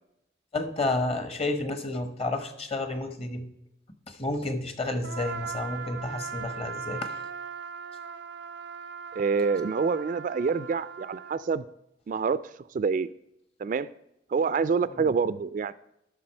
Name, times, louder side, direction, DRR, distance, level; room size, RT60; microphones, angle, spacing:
voice 1, 0.5-3.5 4.1-7.2 15.0-15.1, left 2 dB, 35° left, 8 dB, 1.1 m, -31 dB
Trumpet, 5.0-11.5, right 5 dB, 90° right, 0.6 m, -39 dB
voice 2, 9.1-11.6 12.1-12.4 12.7-13.1 13.6-13.9 14.3-15.7, right 5 dB, 45° right, 16 dB, 0.3 m, -26 dB
13.0 x 6.1 x 4.4 m, 0.82 s
head